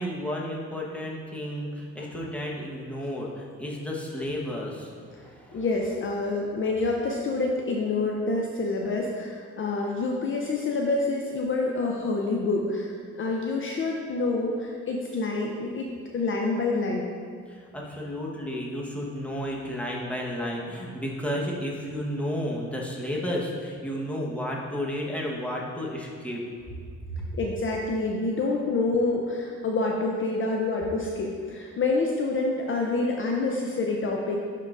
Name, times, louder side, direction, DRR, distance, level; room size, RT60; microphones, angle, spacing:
voice 1, 0.0-5.6 17.5-26.4 27.2-27.3, equal, 5° left, -3 dB, 1.2 m, -32 dB
voice 2, 5.5-17.1 27.3-34.4, left 3 dB, 40° left, 0 dB, 0.6 m, -27 dB
10.5 x 3.7 x 2.5 m, 2.2 s
cardioid pair, 90°, 30 cm